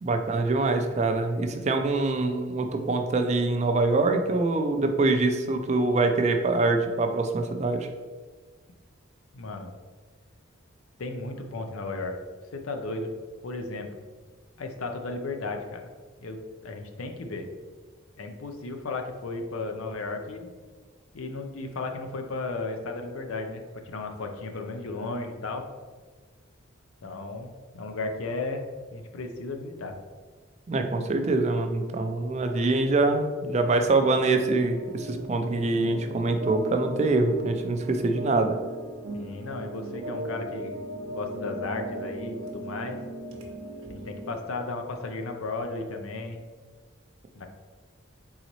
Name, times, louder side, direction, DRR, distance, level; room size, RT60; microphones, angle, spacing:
voice 1, 0.0-7.9 30.7-38.6, right 3 dB, 35° right, 5 dB, 0.3 m, -24 dB
voice 2, 9.3-9.7 11.0-12.1 12.5-13.1 13.4-13.9 14.6-15.9 16.2-17.5 18.2-20.5 21.1-25.6 27.0-28.7 28.9-29.9 39.1-40.8 41.1-43.0 43.9-46.4 47.3-47.5, left 3 dB, 80° left, 4 dB, 0.6 m, -34 dB
sound 1, 33.8-44.3, right 1 dB, 70° right, 0.7 m, -38 dB
4.0 x 3.8 x 3.0 m, 1.5 s
head